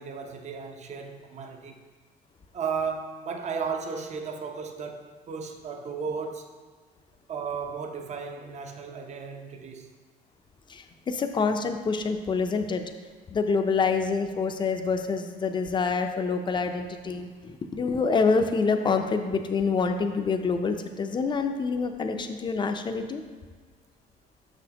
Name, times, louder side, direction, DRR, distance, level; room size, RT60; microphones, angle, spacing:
voice 1, 0.0-1.8 2.5-6.5 7.3-9.9, right 5 dB, 45° right, 4 dB, 0.7 m, -34 dB
voice 2, 10.7-12.8 13.3-23.2, left 4 dB, 30° left, 6 dB, 0.5 m, -26 dB
6.4 x 6.2 x 2.9 m, 1.5 s
cardioid pair, 110°, 17 cm